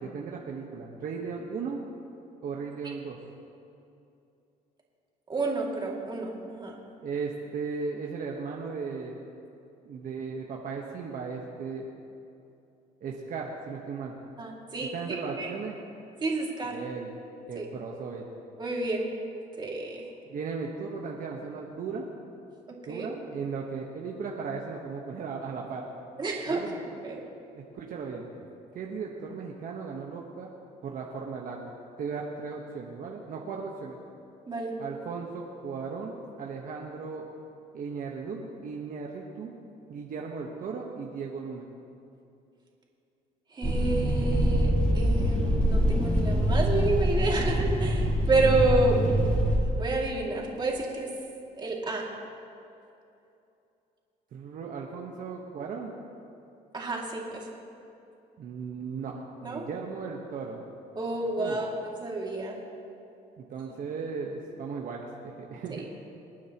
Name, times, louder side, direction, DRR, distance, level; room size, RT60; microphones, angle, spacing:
voice 1, 0.0-1.8 2.4-3.2 7.0-9.2 9.8-11.9 13.0-14.1 14.9-15.7 16.7-17.1 17.5-18.3 20.3-22.0 22.9-25.8 26.5-26.8 27.5-28.3 28.7-30.5 30.8-34.0 34.8-37.2 37.7-39.5 39.9-41.7 54.3-55.9 58.4-60.6 61.4-61.6 63.4-65.9, right 5 dB, 55° right, -1 dB, 1.3 m, -36 dB
voice 2, 5.3-6.7 14.4-15.5 16.2-16.8 17.6-17.7 18.6-19.1 19.6-20.1 22.9-23.1 26.2-27.2 34.5-34.7 43.5-49.0 49.6-51.1 51.5-52.1 56.7-57.5 59.4-59.7 61.0-62.6, right 2 dB, 25° right, -2 dB, 2.5 m, -30 dB
sound 1, 43.6-49.6, equal, 10° left, 3.0 m, -24 dB
28.0 x 9.3 x 3.0 m, 2.7 s
cardioid pair, 110°, 17 cm